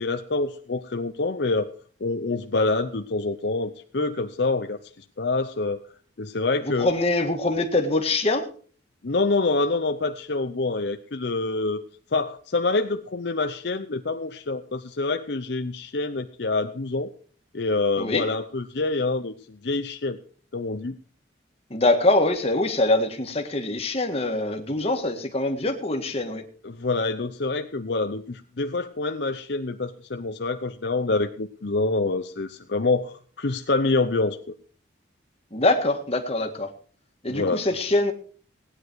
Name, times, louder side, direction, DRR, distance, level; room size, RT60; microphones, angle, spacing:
voice 1, 0.0-1.7 2.0-5.8 6.2-6.9 9.0-11.8 12.1-17.1 17.5-20.2 20.5-21.0 26.6-34.4 37.3-37.7, left 3 dB, 60° left, 7 dB, 0.7 m, -26 dB
voice 2, 6.6-8.5 18.0-18.3 21.7-26.4 35.5-36.7 37.2-38.1, left 2 dB, 30° left, 4 dB, 1.8 m, -24 dB
17.5 x 10.0 x 4.7 m, 0.44 s
head